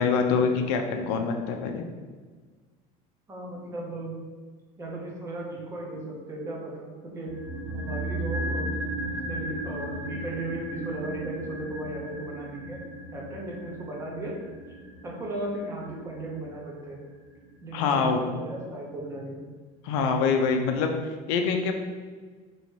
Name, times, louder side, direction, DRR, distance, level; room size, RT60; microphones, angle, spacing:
voice 1, 0.0-1.9 17.7-18.2 19.8-21.7, left 5 dB, 70° left, 4 dB, 0.6 m, -25 dB
voice 2, 3.3-4.2 4.8-7.3 7.7-8.7 9.1-12.8 13.1-14.3 15.0-17.0 17.6-19.4, right 2 dB, 15° right, -3 dB, 0.8 m, -36 dB
sound 1, 7.3-17.5 17.8-17.9, right 1 dB, 85° right, 0.6 m, -35 dB
3.1 x 2.8 x 4.5 m, 1.4 s
cardioid pair, 160°, 17 cm